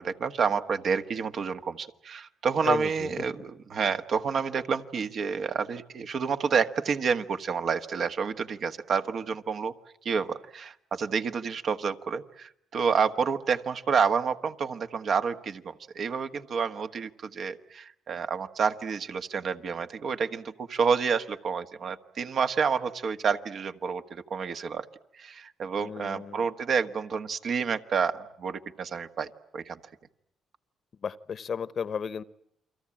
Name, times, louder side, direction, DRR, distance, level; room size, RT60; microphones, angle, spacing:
voice 1, 0.0-9.7 10.0-24.8 25.1-29.3 29.5-29.8, right 6 dB, 55° right, 8 dB, 1.4 m, -29 dB
voice 2, 2.6-3.3 25.8-26.5 31.0-32.2, left 6 dB, 50° left, 17 dB, 1.0 m, -33 dB
29.5 x 23.0 x 8.8 m, 0.71 s
cardioid pair, 90°, 0 cm